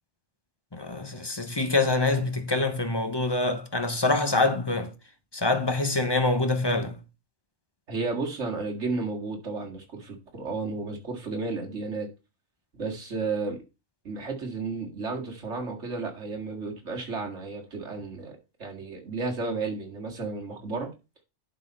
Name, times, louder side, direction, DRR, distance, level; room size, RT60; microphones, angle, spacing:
voice 1, 0.7-4.9 5.3-6.9, left 2 dB, 20° left, 0.9 m, -25 dB
voice 2, 7.9-12.1 12.8-13.6 14.0-20.9, right 3 dB, 60° right, 2.3 m, -33 dB
11.0 x 4.2 x 5.5 m
omnidirectional pair, 1.4 m